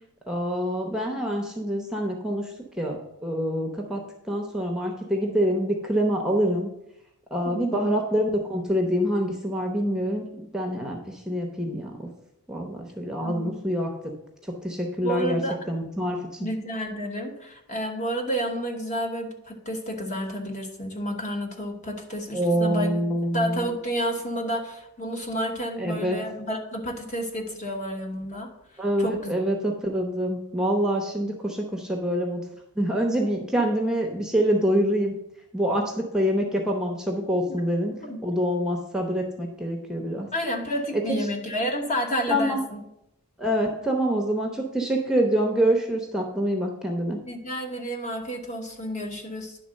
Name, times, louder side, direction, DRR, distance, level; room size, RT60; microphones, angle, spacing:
voice 1, 0.3-6.7 7.3-10.3 10.5-12.1 12.5-13.9 14.5-15.4 15.7-16.5 22.3-23.7 25.8-26.2 28.8-32.4 32.8-35.1 35.5-37.9 38.2-40.3 40.9-41.2 42.3-42.6 43.4-47.2, equal, 5° right, 1 dB, 0.8 m, -26 dB
voice 2, 7.4-7.9 13.2-13.5 15.0-15.6 16.4-23.0 23.3-28.5 29.0-29.3 37.5-37.6 38.1-38.2 40.3-42.8 47.2-49.6, equal, 35° left, 2 dB, 1.2 m, -30 dB
10.0 x 3.7 x 6.3 m, 0.82 s
head